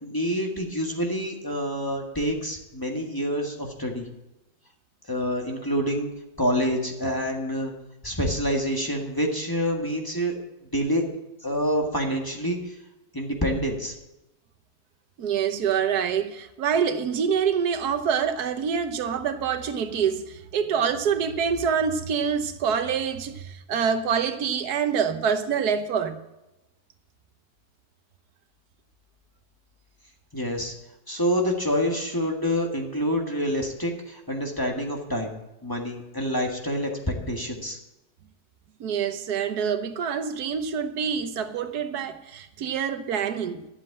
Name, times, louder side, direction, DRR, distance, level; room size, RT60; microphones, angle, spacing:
voice 1, 0.0-4.1 5.1-6.1 6.4-7.7 8.0-10.3 10.7-11.0 11.4-12.7 13.1-13.9 30.3-30.7 31.1-35.3 35.6-37.8, equal, 15° left, 1.7 m, -27 dB
voice 2, 15.2-26.2 38.8-43.7, right 7 dB, 85° right, 1.5 m, -26 dB
11.5 x 7.6 x 8.5 m
omnidirectional pair, 1.6 m